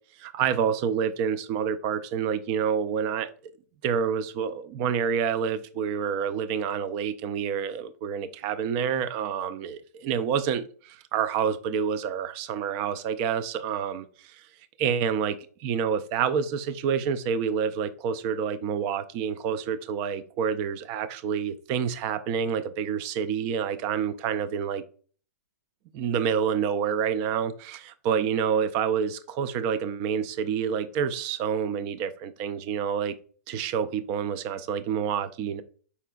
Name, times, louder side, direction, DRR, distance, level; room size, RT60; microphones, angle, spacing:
voice 1, 0.2-3.3 3.8-14.4 14.8-24.8 25.9-33.1 33.5-35.6, right 7 dB, 30° right, 13 dB, 0.4 m, -28 dB
4.7 x 4.2 x 2.3 m, 0.43 s
hypercardioid pair, 150°, 9 cm